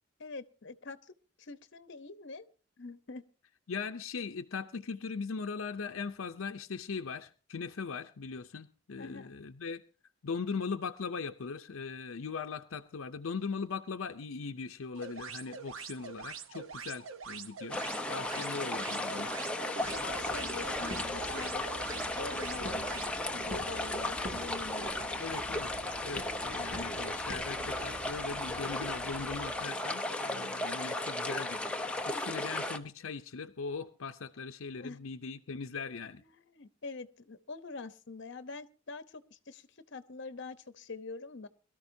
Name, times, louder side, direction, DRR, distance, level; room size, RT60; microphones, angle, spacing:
voice 1, 0.2-2.5 2.8-3.2 9.0-9.3 19.7-25.1 34.7-35.0 36.2-41.5, left 3 dB, 60° left, 0.9 m, -45 dB
voice 2, 3.7-9.8 10.2-17.8 18.1-19.3 25.2-31.8 32.1-36.2, left 5 dB, 85° left, 0.6 m, -39 dB
sound 1, 15.0-23.1, right 6 dB, 80° right, 0.9 m, -44 dB
sound 2, 17.7-32.8, left 1 dB, 5° left, 0.8 m, -35 dB
sound 3, 19.8-29.6, equal, 55° right, 4.6 m, -46 dB
22.5 x 13.0 x 2.7 m
head